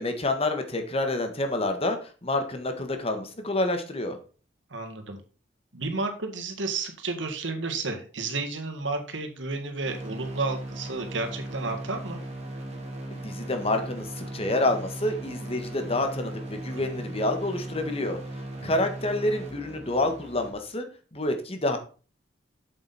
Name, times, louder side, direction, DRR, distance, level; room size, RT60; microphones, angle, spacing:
voice 1, 0.0-4.2 13.2-18.2 18.6-20.8 21.1-21.8, left 2 dB, 30° left, 6 dB, 1.5 m, -28 dB
voice 2, 4.7-5.2 5.7-12.2 16.7-17.0 18.6-18.7, right 3 dB, 80° right, 5 dB, 1.9 m, -32 dB
sound 1, 9.8-20.5, right 1 dB, 35° right, 2.4 m, -38 dB
8.0 x 7.6 x 4.2 m, 0.36 s
head